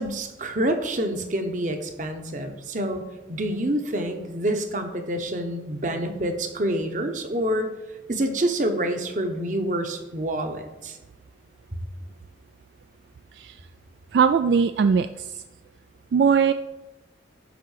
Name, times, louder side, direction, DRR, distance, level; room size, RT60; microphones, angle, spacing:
voice 1, 0.0-3.0 3.3-7.7 8.1-11.0, right 1 dB, 45° right, 6 dB, 1.0 m, -27 dB
voice 2, 14.1-15.4 16.1-16.5, right 6 dB, 70° right, 10 dB, 0.3 m, -20 dB
10.5 x 3.8 x 6.5 m, 1.1 s
head